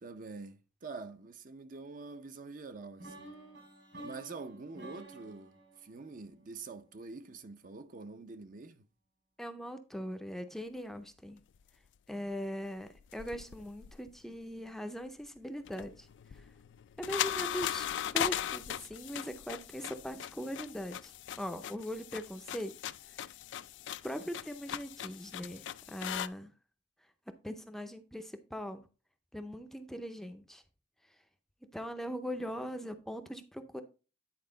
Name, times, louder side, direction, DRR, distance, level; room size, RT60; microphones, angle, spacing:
voice 1, 0.0-3.4 4.0-8.9, right 3 dB, 45° right, 0.5 m, -46 dB
sound 1, 3.0-7.0, right 1 dB, 75° right, 4.8 m, -51 dB
voice 2, 9.4-11.4 12.1-16.1 17.0-22.7 23.1-23.3 24.0-26.5 27.4-28.8 29.3-30.6 31.7-33.8, equal, ahead, 0.5 m, -40 dB
sound 2, 13.0-14.4 15.6-26.3, left 11 dB, 70° left, 0.3 m, -39 dB
9.5 x 4.3 x 3.8 m
head